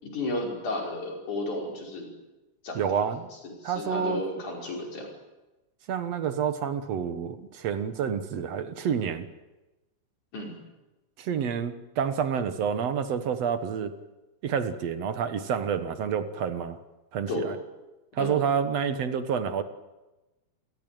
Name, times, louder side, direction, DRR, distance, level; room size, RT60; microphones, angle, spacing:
voice 1, 0.0-2.1 2.6-2.8 3.6-5.1 10.3-10.6 17.3-17.5 18.2-18.4, left 2 dB, 90° left, 0 dB, 7.0 m, -33 dB
voice 2, 2.8-3.3 3.6-4.2 5.9-9.3 11.2-13.9 14.4-16.8 17.1-17.6 18.2-19.6, right 7 dB, 65° right, 10 dB, 2.3 m, -28 dB
28.5 x 17.0 x 9.0 m, 1.1 s
omnidirectional pair, 3.4 m